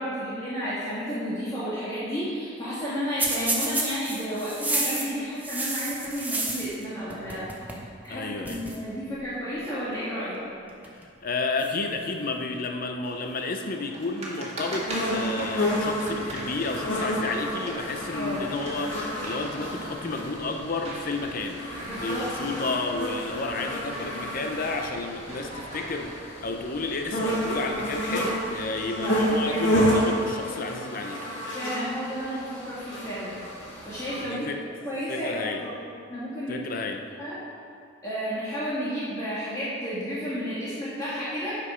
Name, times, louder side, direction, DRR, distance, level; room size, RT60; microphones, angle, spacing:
voice 1, 0.0-7.5 8.0-10.4 18.1-18.5 21.9-22.3 28.9-29.6 31.5-33.4 33.8-34.5 34.8-35.7 36.1-36.6 37.2-37.4 38.0-41.5, equal, 20° left, -10 dB, 1.6 m, -32 dB
sound 1, 3.2-6.8 7.1-7.9 8.1-8.2 8.4-8.8 9.6-9.9 10.7-11.0 11.6-12.6 15.6-15.7 16.1-16.9 17.3-17.4 18.3-18.4 19.6-20.5 21.7-22.3, right 2 dB, 10° right, 0.8 m, -32 dB
voice 2, 8.1-8.6 10.9-21.6 22.0-31.3 34.2-34.6 35.1-35.7 36.5-37.2, left 3 dB, 45° left, 4 dB, 0.6 m, -31 dB
sound 2, 13.0-26.1, right 1 dB, 35° right, 1.6 m, -41 dB
sound 3, 14.9-34.2, equal, 80° left, 2.0 m, -30 dB
8.3 x 5.2 x 5.5 m, 2.4 s
head